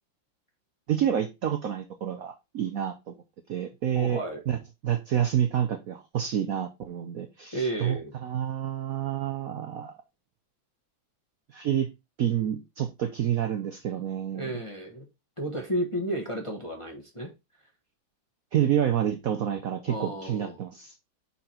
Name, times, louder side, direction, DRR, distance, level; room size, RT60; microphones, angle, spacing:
voice 1, 0.9-3.1 3.5-4.6 4.8-9.9 11.5-11.9 12.2-14.5 18.5-20.9, right 10 dB, 65° right, 0.8 m, -28 dB
voice 2, 3.9-4.4 7.5-8.1 14.3-15.1 15.4-17.3 19.9-20.6, right 1 dB, 20° left, 0.9 m, -32 dB
5.7 x 4.0 x 4.3 m
omnidirectional pair, 2.2 m